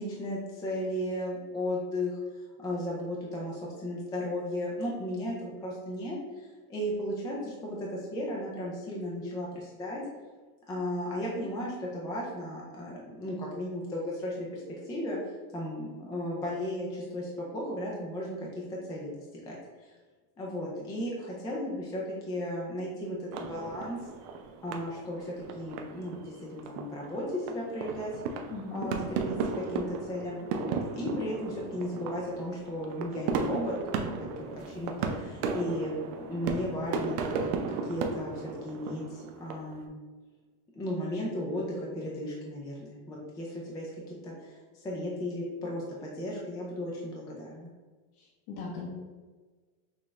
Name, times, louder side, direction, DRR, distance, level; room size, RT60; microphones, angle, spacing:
voice 1, 0.0-10.0 10.7-15.2 15.5-19.1 19.5-19.9 20.4-24.0 24.6-28.4 28.7-30.4 30.9-33.8 34.4-40.0 40.8-47.7, left 1 dB, 10° left, -4 dB, 0.3 m, -35 dB
sound 1, 23.3-39.8, right 4 dB, 85° right, 0.7 m, -35 dB
voice 2, 28.5-28.9 48.2-48.9, left 4 dB, 75° left, -3 dB, 1.1 m, -39 dB
6.1 x 2.4 x 3.2 m, 1.4 s
cardioid pair, 160°, 44 cm